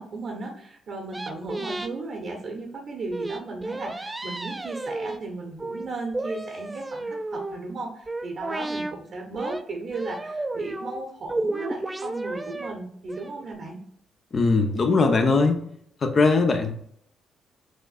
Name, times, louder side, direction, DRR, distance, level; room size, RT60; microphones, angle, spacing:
voice 1, 0.0-13.8, right 3 dB, 55° right, 1 dB, 0.9 m, -35 dB
sound 1, 1.1-1.9 3.1-5.2 5.6-5.9 6.1-7.6 8.1-8.9 9.4-9.6 9.9-11.0 11.3-12.7 13.1-13.5, right 2 dB, 20° right, 0.4 m, -32 dB
voice 2, 14.3-15.6 16.0-16.9, left 3 dB, 45° left, 6 dB, 0.8 m, -20 dB
6.2 x 2.6 x 2.4 m, 0.67 s
hypercardioid pair, 45°, 0 cm